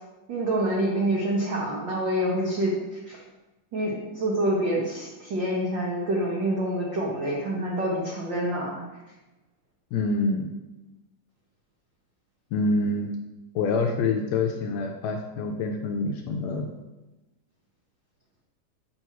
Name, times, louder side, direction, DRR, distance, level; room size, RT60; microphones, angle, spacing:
voice 1, 0.3-3.2 3.7-8.9, right 1 dB, 90° right, -3 dB, 1.0 m, -27 dB
voice 2, 9.9-10.5 12.5-13.1 13.6-16.7, left 3 dB, 80° left, 3 dB, 1.6 m, -26 dB
7.6 x 3.1 x 5.6 m, 1.1 s
omnidirectional pair, 3.5 m